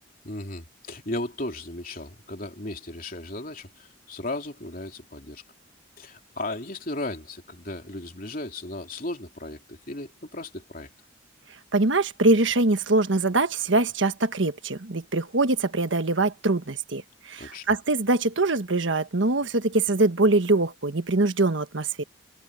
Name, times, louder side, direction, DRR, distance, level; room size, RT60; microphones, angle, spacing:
voice 1, 0.2-5.4 6.0-10.9 17.4-17.7, left 2 dB, 45° left, 3.3 m, -35 dB
voice 2, 11.7-22.0, right 2 dB, 70° right, 1.4 m, -23 dB
head